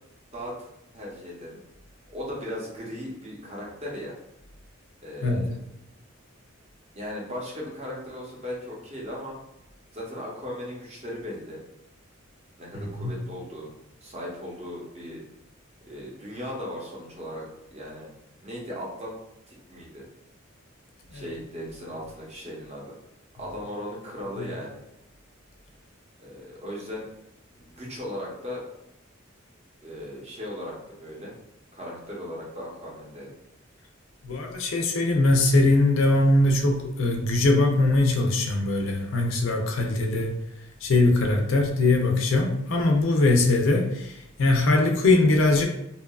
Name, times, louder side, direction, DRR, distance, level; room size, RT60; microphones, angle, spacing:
voice 1, 0.9-1.6 2.1-4.2 5.0-5.5 7.0-9.4 9.9-11.6 12.6-13.7 14.0-15.2 15.9-18.1 18.4-19.2 19.5-20.0 21.1-22.9 23.4-24.8 26.2-27.1 27.6-28.6 29.8-31.3 31.7-33.3, equal, 30° right, -4 dB, 0.7 m, -37 dB
voice 2, 12.7-13.2 21.1-21.3 24.4-24.5 34.2-40.4 40.8-45.7, left 2 dB, 65° left, 2 dB, 0.4 m, -21 dB
2.7 x 2.3 x 2.3 m, 0.83 s
head